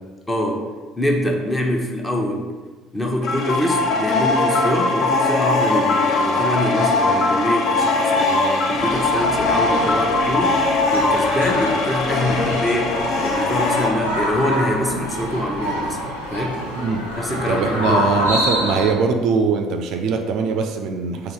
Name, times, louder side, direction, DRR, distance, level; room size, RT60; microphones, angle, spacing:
voice 1, 0.3-0.7 1.0-2.5 2.9-10.6 10.9-16.0 16.3-16.6 17.2-18.1, left 1 dB, 15° left, 1 dB, 0.8 m, -24 dB
sound 1, 3.2-13.9, left 3 dB, 50° left, 0.5 m, -20 dB
sound 2, 8.7-18.9, equal, 90° left, 0.7 m, -26 dB
voice 2, 16.7-17.1 17.5-21.3, right 5 dB, 55° right, 4 dB, 0.3 m, -21 dB
3.8 x 2.9 x 4.7 m, 1.3 s
figure-of-eight pair, 55°, 0 cm